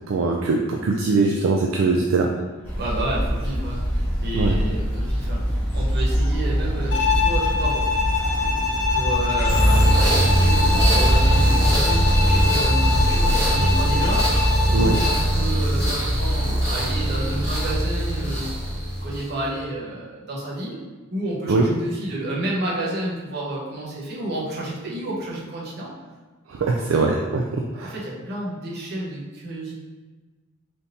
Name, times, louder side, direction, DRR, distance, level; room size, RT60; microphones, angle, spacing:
voice 1, 0.1-2.3 4.3-4.6 14.7-15.0 21.5-21.6 26.5-27.9, right 3 dB, 70° right, 1 dB, 0.3 m, -21 dB
sound 1, 2.6-13.4, equal, 10° left, 1.2 m, -25 dB
voice 2, 2.8-8.4 8.7-18.5 19.0-20.8 21.1-25.9 26.6-26.8 27.7-29.7, right 1 dB, 50° right, -5 dB, 1.0 m, -31 dB
Bowed string instrument, 6.9-15.3, left 5 dB, 65° left, 0.6 m, -25 dB
sound 2, 9.4-19.4, right 1 dB, 15° right, 1.0 m, -20 dB
3.5 x 2.8 x 4.0 m, 1.3 s
head